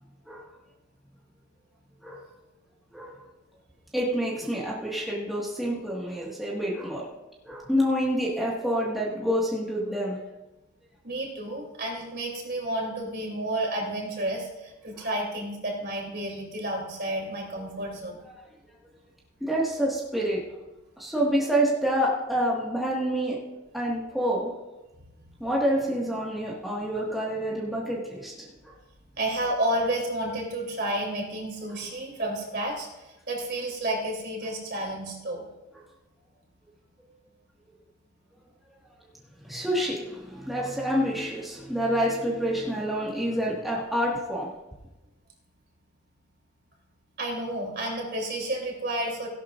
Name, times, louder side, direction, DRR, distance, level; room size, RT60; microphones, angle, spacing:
voice 1, 2.9-3.3 3.9-7.1 7.4-10.2 14.9-15.1 19.4-20.5 21.0-23.4 23.7-24.5 25.4-28.7 31.7-31.8 39.4-44.5, equal, ahead, -6 dB, 1.8 m, -28 dB
voice 2, 11.0-18.2 29.2-35.4 47.2-49.3, right 1 dB, 50° right, 0 dB, 3.3 m, -31 dB
17.5 x 11.5 x 2.6 m, 1.1 s
head